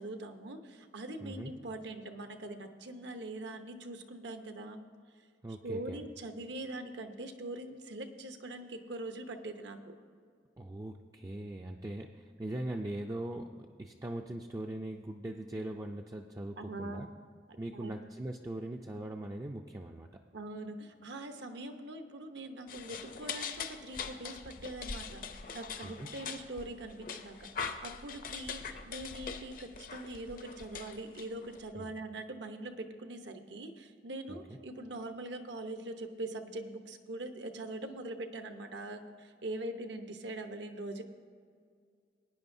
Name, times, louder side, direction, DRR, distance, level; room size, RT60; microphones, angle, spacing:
voice 1, 0.0-4.8 5.6-10.0 16.6-17.1 17.7-17.9 20.3-41.0, right 2 dB, 70° right, 6 dB, 0.9 m, -42 dB
voice 2, 1.2-1.5 5.4-6.1 10.6-17.1 17.6-20.1 25.8-26.1 31.7-31.9 34.3-34.4, right 1 dB, 20° right, 2 dB, 0.3 m, -41 dB
sound 1, 22.7-31.7, left 6 dB, 45° left, 0.6 m, -42 dB
19.0 x 9.7 x 2.7 m, 2.1 s
head